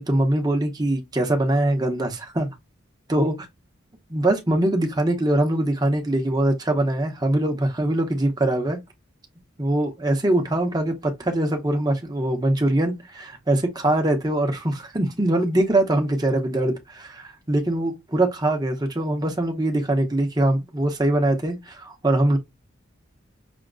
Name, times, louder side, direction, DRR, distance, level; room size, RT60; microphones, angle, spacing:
voice 1, 0.0-2.5 3.1-3.5 4.1-8.8 9.6-22.4, right 1 dB, 20° right, 0.9 m, -22 dB
6.0 x 2.8 x 2.5 m
head